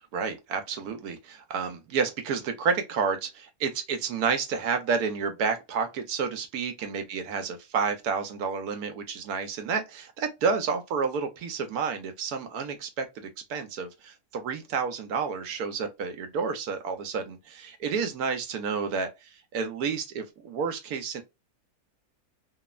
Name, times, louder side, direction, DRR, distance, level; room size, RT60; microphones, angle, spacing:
voice 1, 0.1-21.2, right 5 dB, 75° right, 1.2 m, -30 dB
3.2 x 2.0 x 2.3 m
omnidirectional pair, 1.7 m